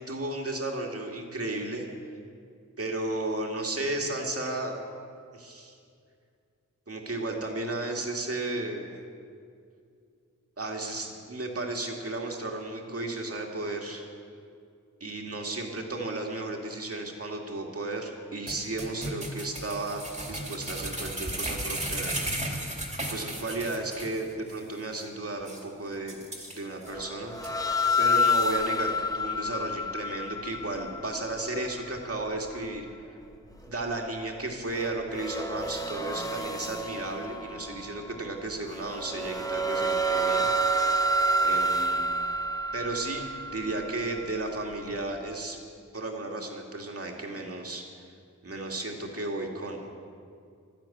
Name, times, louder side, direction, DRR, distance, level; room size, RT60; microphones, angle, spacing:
voice 1, 0.0-1.9 2.8-4.8 5.3-5.8 6.9-8.9 10.6-14.1 15.0-20.0 20.3-22.3 23.0-26.2 26.5-27.4 28.0-32.9 33.5-42.0 42.7-43.2 43.5-45.6 45.9-47.8 48.4-49.9, right 2 dB, 45° right, 1 dB, 2.2 m, -34 dB
sound 1, 18.5-24.2 24.5-24.6 25.0-25.1 25.5-25.6 26.1-26.9 27.4-27.5, right 1 dB, 20° right, 2.5 m, -35 dB
sound 2, 26.9-32.2 34.7-38.1 38.7-44.7, equal, 10° left, 0.9 m, -29 dB
12.0 x 11.5 x 8.5 m, 2.3 s
wide cardioid pair, 90°, 32 cm